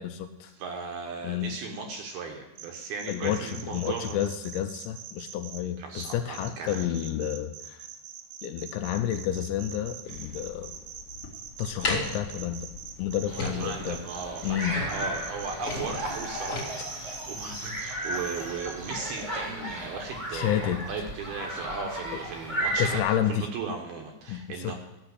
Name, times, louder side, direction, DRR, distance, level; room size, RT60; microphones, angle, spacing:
voice 1, 0.0-0.5 1.2-1.6 3.1-7.8 8.4-10.7 11.6-12.7 13.0-14.0 14.4-14.8 20.3-20.8 22.8-23.5 24.3-24.7, left 10 dB, 80° left, 7 dB, 2.7 m, -30 dB
voice 2, 0.5-4.2 5.8-7.0 13.4-24.7, right 4 dB, 70° right, 2 dB, 2.6 m, -37 dB
sound 1, 2.6-5.6 6.0-19.2, right 8 dB, 90° right, 3.6 m, -43 dB
sound 2, 10.0-16.6, left 3 dB, 40° left, 2.3 m, -36 dB
sound 3, 13.2-23.0, right 1 dB, 20° right, 0.7 m, -35 dB
14.0 x 6.6 x 7.8 m, 0.96 s
omnidirectional pair, 5.5 m